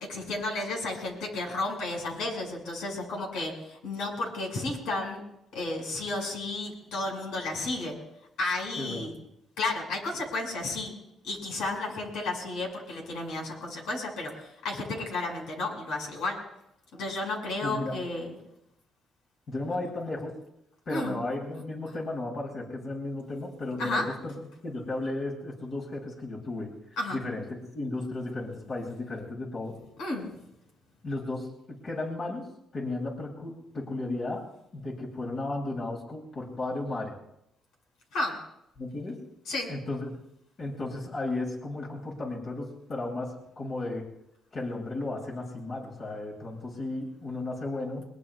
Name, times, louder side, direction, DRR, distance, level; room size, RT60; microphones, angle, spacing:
voice 1, 0.1-5.2 5.5-8.0 8.4-9.1 9.6-10.9 11.2-16.4 16.9-18.3 20.9-21.1 23.8-24.1 27.0-27.2 30.0-30.3 38.1-38.3 39.5-39.7, left 2 dB, 85° left, 1 dB, 5.9 m, -32 dB
voice 2, 8.8-9.2 17.6-18.0 19.5-20.3 20.9-24.3 24.6-26.7 27.1-29.8 31.0-32.5 32.7-34.5 34.7-37.1 38.8-39.2 39.7-40.2 40.6-44.1 44.5-48.1, left 2 dB, 50° left, -3 dB, 7.7 m, -34 dB
24.0 x 22.5 x 2.4 m, 0.80 s
cardioid pair, 90°, 0 cm